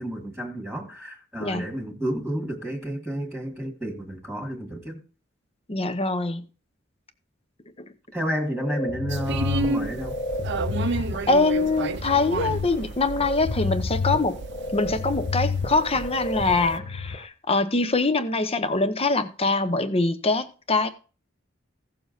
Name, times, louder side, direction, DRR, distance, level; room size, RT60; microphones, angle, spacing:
voice 1, 0.0-5.0 8.1-10.2, equal, ahead, 1.9 m, -31 dB
voice 2, 5.7-6.4 10.8-14.4 14.7-20.9, left 3 dB, 30° left, 0.8 m, -24 dB
sound 1, 8.6-17.2, left 4 dB, 50° left, 1.1 m, -30 dB
sound 2, 9.1-16.8, right 3 dB, 60° right, 0.6 m, -32 dB
16.5 x 7.0 x 2.6 m
head